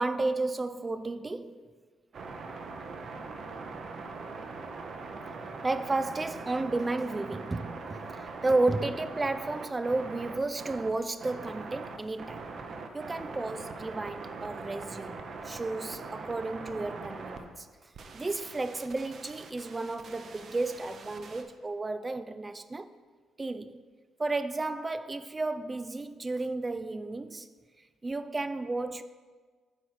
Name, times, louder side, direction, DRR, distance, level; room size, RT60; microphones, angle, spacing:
voice 1, 0.0-1.7 5.6-12.4 12.9-17.7 18.1-22.9 23.4-23.8 24.2-27.5 28.0-29.0, right 2 dB, 25° right, 0.3 m, -32 dB
sound 1, 2.1-17.4 17.9-21.4, right 4 dB, 55° right, 0.7 m, -42 dB
8.8 x 3.0 x 5.7 m
cardioid pair, 90°, 0 cm